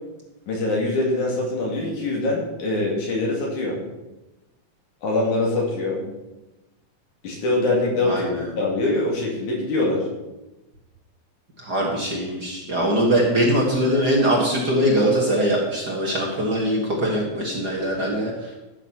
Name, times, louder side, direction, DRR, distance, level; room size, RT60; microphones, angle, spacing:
voice 1, 0.5-3.8 5.0-6.0 7.2-8.2 8.6-10.1, left 2 dB, 75° left, -2 dB, 4.1 m, -23 dB
voice 2, 8.0-8.5 11.6-18.5, right 1 dB, 40° right, -2 dB, 2.0 m, -22 dB
13.5 x 6.8 x 5.6 m, 1.0 s
omnidirectional pair, 3.5 m